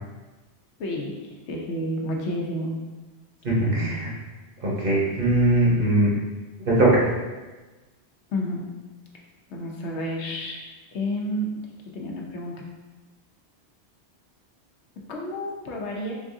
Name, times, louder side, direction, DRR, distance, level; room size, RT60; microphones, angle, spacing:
voice 1, 0.8-2.8 8.3-8.6 9.5-10.6 10.9-11.5 11.9-12.5 15.1-16.1, left 1 dB, 80° left, -1 dB, 1.0 m, -30 dB
voice 2, 3.4-4.1 4.6-6.1 6.6-7.0, right 1 dB, 55° right, -5 dB, 1.1 m, -20 dB
4.0 x 3.6 x 2.6 m, 1.2 s
omnidirectional pair, 1.1 m